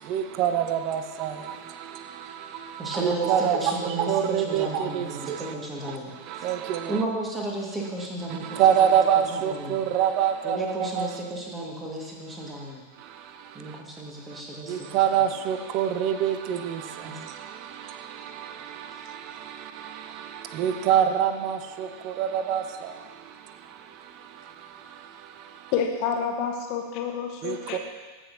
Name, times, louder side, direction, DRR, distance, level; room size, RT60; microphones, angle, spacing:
voice 1, 0.0-5.5 5.8-7.0 8.3-11.1 13.0-13.8 14.3-14.4 14.7-25.7 27.4-27.8, right 9 dB, 40° right, 9 dB, 0.5 m, -27 dB
voice 2, 2.8-6.1 6.9-8.9 9.4-9.8 10.4-12.9 13.5-14.9 17.0-17.2, right 1 dB, 15° right, -1 dB, 1.6 m, -33 dB
voice 3, 25.7-27.8, left 7 dB, 45° left, 3 dB, 1.1 m, -28 dB
15.5 x 5.9 x 2.7 m, 1.4 s
figure-of-eight pair, 90°, 0 cm